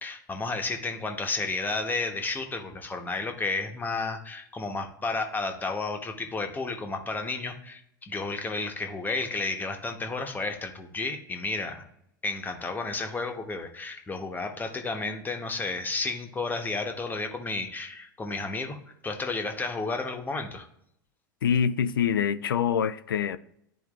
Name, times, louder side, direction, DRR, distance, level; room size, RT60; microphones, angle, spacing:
voice 1, 0.0-11.8 12.2-20.6, left 3 dB, 15° left, 1.0 m, -32 dB
voice 2, 21.4-23.4, left 8 dB, 75° left, 0.4 m, -25 dB
12.0 x 4.4 x 2.4 m
hypercardioid pair, 90°, 12 cm